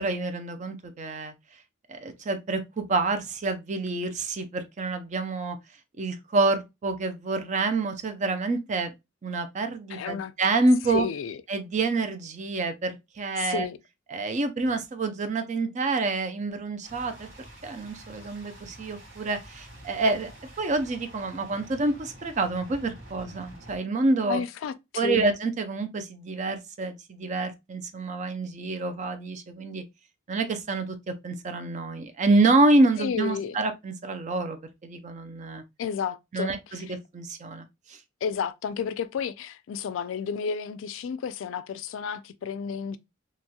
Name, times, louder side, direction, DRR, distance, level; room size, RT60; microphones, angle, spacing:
voice 1, 0.0-1.3 1.9-5.6 6.0-8.9 9.2-11.1 11.5-13.7 14.1-17.3 17.6-20.3 20.6-24.4 25.0-29.8 30.3-35.6 36.3-38.0, right 3 dB, 40° right, 0.4 m, -27 dB
voice 2, 9.9-10.3 10.9-11.4 13.4-13.8 24.3-25.2 33.0-33.6 35.8-36.8 38.2-43.0, left 7 dB, 75° left, 0.3 m, -32 dB
sound 1, 16.8-23.8, right 1 dB, 75° right, 1.4 m, -48 dB
2.9 x 2.8 x 2.2 m
head